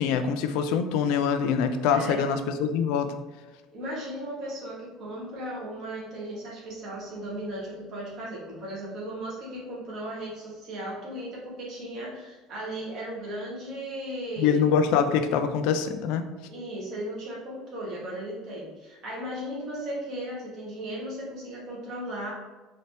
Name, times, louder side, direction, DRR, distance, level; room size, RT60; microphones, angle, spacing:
voice 1, 0.0-3.1 14.4-16.2, left 7 dB, 70° left, 8 dB, 0.4 m, -24 dB
voice 2, 1.9-2.3 3.7-14.6 16.5-22.3, right 1 dB, 40° right, -5 dB, 1.4 m, -36 dB
4.2 x 2.7 x 3.3 m, 1.2 s
cardioid pair, 170°, 0 cm